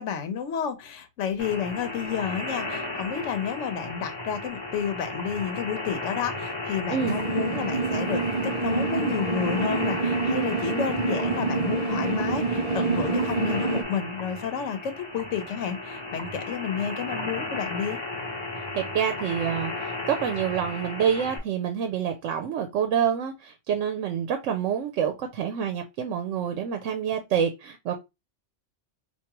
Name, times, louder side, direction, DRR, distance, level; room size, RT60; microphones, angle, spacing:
voice 1, 0.0-18.0, left 7 dB, 80° left, 1.0 m, -31 dB
sound 1, 1.4-21.4, left 2 dB, 25° left, 0.8 m, -34 dB
sound 2, 7.0-13.8, right 4 dB, 45° right, 0.5 m, -27 dB
voice 2, 18.8-19.7 20.1-27.9, right 8 dB, 85° right, 0.9 m, -27 dB
4.6 x 2.5 x 2.9 m
omnidirectional pair, 1.2 m